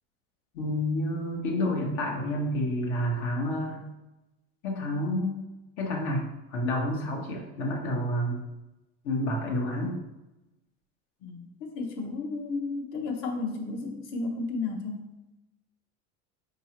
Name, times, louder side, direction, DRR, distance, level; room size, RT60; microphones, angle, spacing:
voice 1, 0.5-3.8 4.6-5.4 5.8-6.2 6.5-8.4 9.0-10.0, left 1 dB, 75° left, -1 dB, 1.2 m, -29 dB
voice 2, 11.2-15.1, left 3 dB, 60° left, 2 dB, 1.0 m, -33 dB
4.9 x 2.9 x 2.9 m, 0.98 s
supercardioid pair, 95°, 37 cm